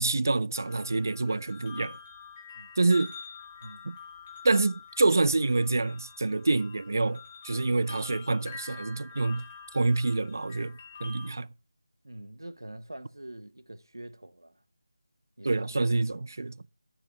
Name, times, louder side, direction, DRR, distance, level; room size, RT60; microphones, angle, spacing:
voice 1, 0.0-1.9 2.8-3.1 3.8-4.0 4.4-7.2 7.4-9.4 9.7-10.7 11.0-11.5 15.4-16.5, right 3 dB, 55° right, 0.3 m, -26 dB
sound 1, 0.5-11.3, left 5 dB, 25° left, 1.7 m, -47 dB
voice 2, 12.0-14.6 15.4-15.7, right 1 dB, 80° right, 0.8 m, -45 dB
9.1 x 4.5 x 5.7 m
figure-of-eight pair, 160°, 2 cm